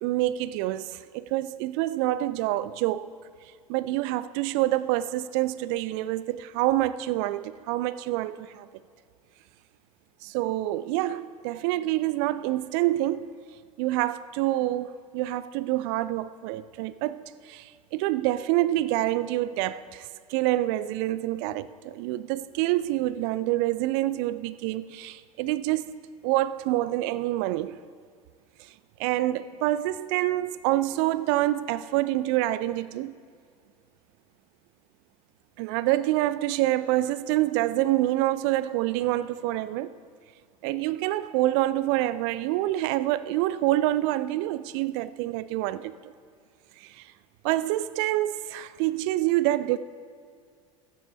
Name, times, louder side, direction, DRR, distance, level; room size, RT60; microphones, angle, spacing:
voice 1, 0.0-3.1 3.7-8.7 10.2-13.3 13.8-17.2 17.5-26.0 26.2-27.8 29.0-33.1 35.6-39.9 40.6-46.1 46.8-47.1 47.4-49.8, right 15 dB, 50° right, 17 dB, 0.5 m, -27 dB
20.0 x 9.2 x 4.1 m, 2.1 s
figure-of-eight pair, 75°, 18 cm